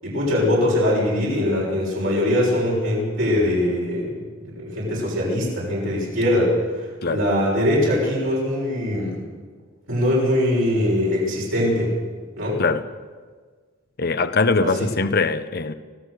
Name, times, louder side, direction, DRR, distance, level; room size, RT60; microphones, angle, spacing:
voice 1, 0.0-9.2 9.9-11.9 12.4-12.6 14.6-14.7, left 1 dB, 65° right, -5 dB, 6.6 m, -22 dB
voice 2, 14.0-15.7, left 3 dB, 45° left, 11 dB, 0.9 m, -21 dB
25.0 x 16.5 x 6.6 m, 1.5 s
head